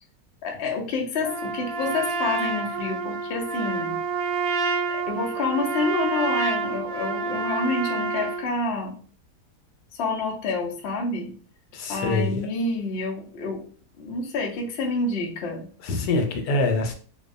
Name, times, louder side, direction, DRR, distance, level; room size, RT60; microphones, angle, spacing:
voice 1, 0.4-4.0 4.9-8.9 9.9-11.3 11.9-13.6 14.0-15.7, left 3 dB, 65° left, 0 dB, 0.6 m, -28 dB
Trumpet, 1.2-8.5, right 4 dB, 70° right, 1.1 m, -28 dB
voice 2, 11.7-12.5 15.8-16.9, left 2 dB, 85° left, 4 dB, 1.2 m, -24 dB
2.7 x 2.1 x 2.4 m, 0.42 s
omnidirectional pair, 1.7 m